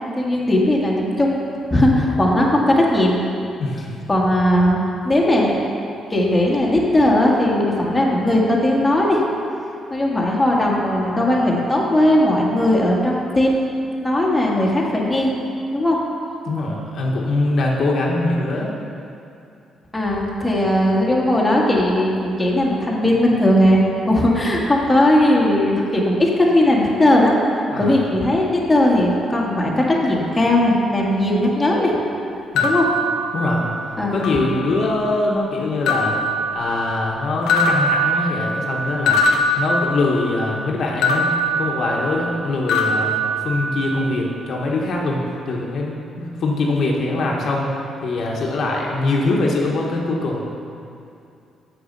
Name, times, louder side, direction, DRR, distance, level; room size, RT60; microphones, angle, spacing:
voice 1, 0.1-1.4 1.7-3.2 4.1-5.6 6.1-9.2 9.9-13.6 14.0-15.3 15.7-16.0 19.9-32.0 32.6-32.9 34.0-34.2, left 1 dB, 15° left, -3 dB, 1.6 m, -18 dB
voice 2, 3.6-4.0 16.4-18.7 27.7-28.0 32.5-32.8 33.3-33.7 34.1-36.2 36.5-39.2 39.6-41.3 41.6-50.4, left 2 dB, 60° left, -2 dB, 1.2 m, -22 dB
sound 1, 32.6-33.8 34.2-35.0 35.9-37.1 37.5-40.4 41.0-42.4 42.7-44.0, left 1 dB, 85° left, 0.8 m, -22 dB
6.7 x 6.5 x 6.6 m, 2.6 s
cardioid pair, 90°, 0 cm